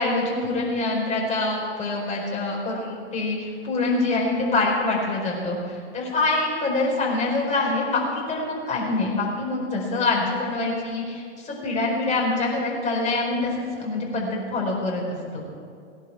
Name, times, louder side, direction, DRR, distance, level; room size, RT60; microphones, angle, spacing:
voice 1, 0.0-8.0 8.3-15.0, left 2 dB, 20° left, -3 dB, 4.5 m, -25 dB
18.0 x 11.0 x 4.7 m, 2.3 s
hypercardioid pair, 120°, 35 cm